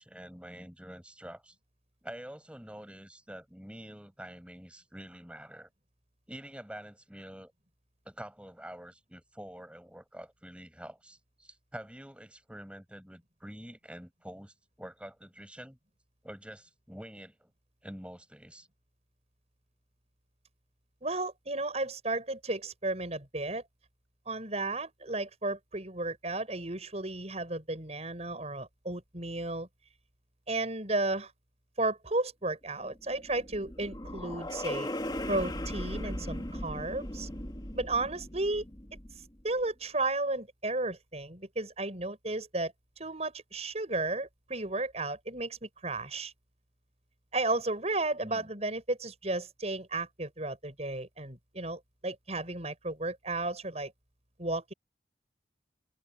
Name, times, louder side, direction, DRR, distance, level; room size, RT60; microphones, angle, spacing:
voice 1, 0.0-1.6 2.0-5.7 6.3-7.5 8.0-15.8 16.2-17.5 17.8-18.7 48.2-48.5, equal, 5° right, 7.8 m, -47 dB
voice 2, 21.0-23.6 24.3-29.7 30.5-31.3 31.8-34.9 35.3-37.3 37.7-38.6 39.4-46.3 47.3-53.9 54.4-54.7, right 2 dB, 40° right, 6.5 m, -33 dB
sound 1, 32.9-39.4, left 1 dB, 25° left, 2.6 m, -38 dB
head